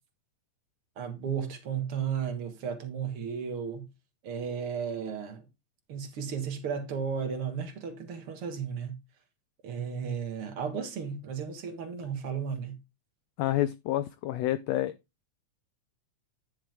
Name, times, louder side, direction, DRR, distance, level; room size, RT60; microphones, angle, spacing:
voice 1, 1.0-3.9 4.2-5.5 5.9-9.0 9.6-12.8, right 7 dB, 50° right, 2.1 m, -34 dB
voice 2, 13.4-14.9, left 14 dB, 90° left, 1.5 m, -28 dB
10.0 x 6.1 x 3.4 m
omnidirectional pair, 3.6 m